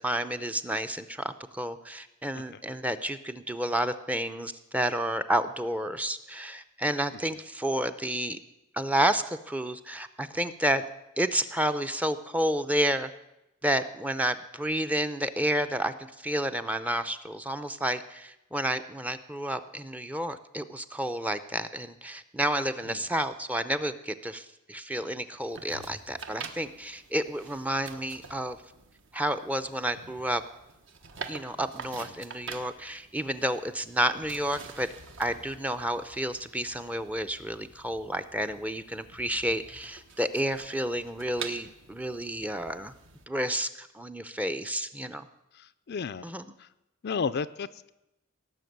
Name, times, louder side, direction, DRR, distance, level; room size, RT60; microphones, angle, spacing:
voice 1, 0.0-8.4 8.7-10.8 11.2-13.1 13.6-15.9 16.2-28.6 29.1-30.4 31.3-34.9 35.2-42.9 43.3-45.3 46.2-46.5, right 1 dB, 5° right, 10 dB, 0.6 m, -30 dB
sound 1, 25.5-43.3, right 5 dB, 60° right, 1.3 m, -47 dB
voice 2, 45.9-46.2 47.0-47.9, left 5 dB, 50° left, 14 dB, 0.4 m, -31 dB
18.0 x 6.7 x 9.3 m, 0.92 s
head